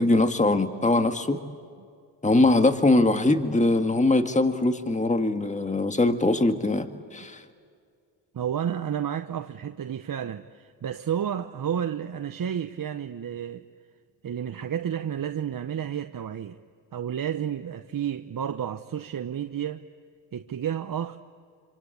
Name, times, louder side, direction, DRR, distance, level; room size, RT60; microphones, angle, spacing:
voice 1, 0.0-1.4 2.2-7.4, left 2 dB, 15° left, 1.8 m, -22 dB
voice 2, 8.3-13.6 14.2-16.6 16.9-19.8 20.3-21.2, right 9 dB, 45° right, 1.0 m, -31 dB
26.5 x 25.5 x 8.6 m
supercardioid pair, 60°, 47 cm